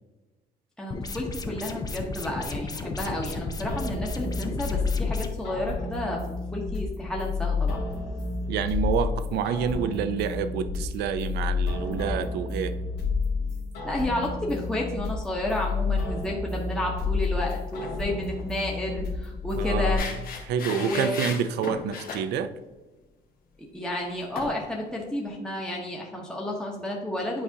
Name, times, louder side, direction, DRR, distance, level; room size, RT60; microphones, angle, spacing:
voice 1, 0.8-6.2 6.5-7.8 13.8-20.0 20.7-21.3 23.6-27.4, left 1 dB, 5° left, -2 dB, 1.0 m, -31 dB
sound 1, 0.9-5.3, left 3 dB, 20° left, 0.6 m, -34 dB
sound 2, 3.7-20.0, left 4 dB, 80° left, 1.8 m, -30 dB
voice 2, 8.5-12.7 19.6-20.1 20.5-22.5, right 7 dB, 75° right, 11 dB, 0.5 m, -28 dB
sound 3, 17.4-18.0 18.3-18.5 19.9-22.2 24.3-24.5, left 5 dB, 60° left, 1.2 m, -36 dB
8.6 x 4.8 x 2.8 m, 1.2 s
cardioid pair, 110°, 17 cm